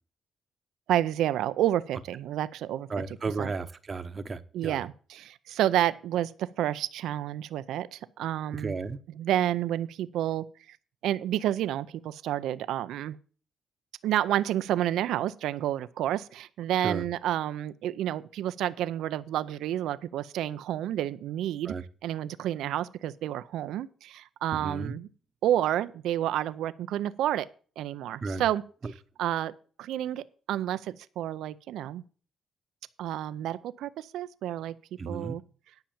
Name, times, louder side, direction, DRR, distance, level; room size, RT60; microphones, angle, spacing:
voice 1, 0.9-3.0 3.4-3.5 4.5-8.7 9.2-10.8 11.0-13.2 14.0-21.7 22.0-25.1 25.4-27.5 27.8-28.6 29.2-29.5 29.8-32.0 33.0-34.7 35.1-35.4, right 12 dB, 85° right, 14 dB, 0.5 m, -30 dB
voice 2, 2.9-4.9 8.5-9.0 16.8-17.0 21.6-21.8 24.5-24.9 28.2-28.4 28.8-28.9 35.0-35.4, right 4 dB, 35° right, 11 dB, 0.9 m, -34 dB
10.5 x 5.7 x 7.2 m, 0.41 s
cardioid pair, 90°, 0 cm